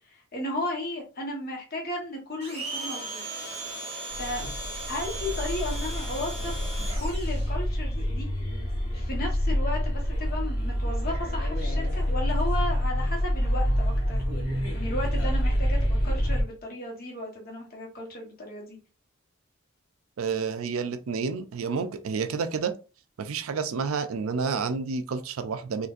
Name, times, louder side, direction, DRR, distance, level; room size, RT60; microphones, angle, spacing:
voice 1, 0.1-3.2 4.1-4.4 4.9-6.6 7.0-8.3 8.9-14.2 14.7-18.8, left 1 dB, 45° left, 1.1 m, -34 dB
Domestic sounds home sounds, 2.4-7.5, right 2 dB, 30° right, 1.5 m, -37 dB
sound 1, 4.1-16.4, equal, 70° left, 1.3 m, -27 dB
voice 2, 20.2-22.7 23.2-25.9, right 5 dB, 85° right, 0.4 m, -29 dB
3.9 x 2.5 x 2.5 m
head